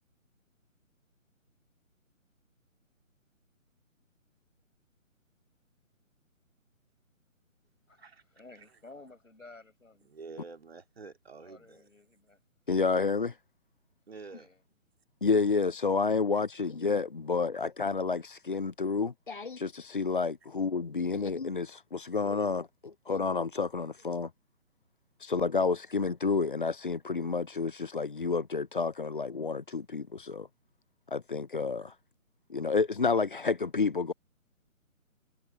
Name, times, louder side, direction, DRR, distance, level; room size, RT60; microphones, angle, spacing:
voice 1, 8.3-10.1 11.4-12.4 14.3-14.6, left 3 dB, 70° left, 6.3 m, -53 dB
voice 2, 10.0-11.9 14.1-14.5, right 4 dB, 45° right, 2.6 m, -48 dB
voice 3, 12.7-13.4 15.2-24.3 25.2-30.5 31.1-32.0 32.5-34.1, left 4 dB, 40° left, 0.7 m, -30 dB
figure-of-eight pair, 145°, 41 cm